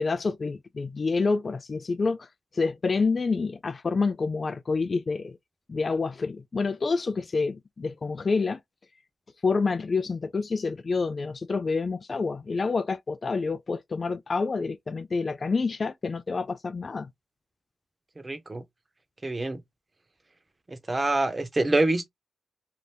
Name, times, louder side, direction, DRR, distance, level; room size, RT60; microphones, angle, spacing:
voice 1, 0.0-2.3 2.5-5.4 5.7-8.6 9.4-17.1, left 4 dB, 50° left, 0.4 m, -28 dB
voice 2, 18.2-18.6 19.2-19.6 20.7-22.1, right 2 dB, 35° right, 1.0 m, -26 dB
2.8 x 2.5 x 3.5 m
cardioid pair, 50°, 0 cm